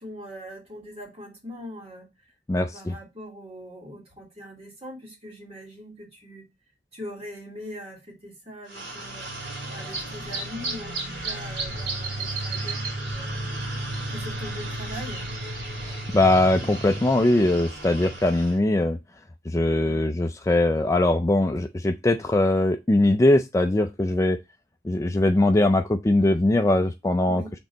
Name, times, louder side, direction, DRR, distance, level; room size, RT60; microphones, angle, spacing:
voice 1, 0.0-2.1 2.5-6.5 6.9-9.3 9.7-13.5 14.1-15.2 19.8-20.1 27.3-27.5, equal, 35° right, 2.6 m, -41 dB
voice 2, 2.5-3.0 15.8-19.0 19.5-24.4 24.8-27.4, left 1 dB, 15° left, 0.4 m, -21 dB
sound 1, 8.7-18.6, right 2 dB, 70° right, 2.3 m, -33 dB
6.2 x 3.8 x 4.0 m
head